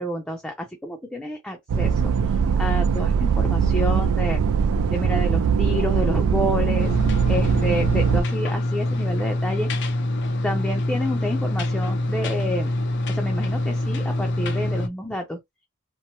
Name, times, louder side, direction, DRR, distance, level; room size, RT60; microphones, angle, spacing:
voice 1, 0.0-2.0 2.6-4.4 4.9-6.9 7.3-9.7 10.4-12.7 13.1-15.4, left 1 dB, 5° left, 0.5 m, -29 dB
sound 1, 1.7-8.2, right 6 dB, 75° right, 0.4 m, -21 dB
sound 2, 6.8-14.9, left 1 dB, 55° left, 0.5 m, -25 dB
3.0 x 2.0 x 2.8 m
head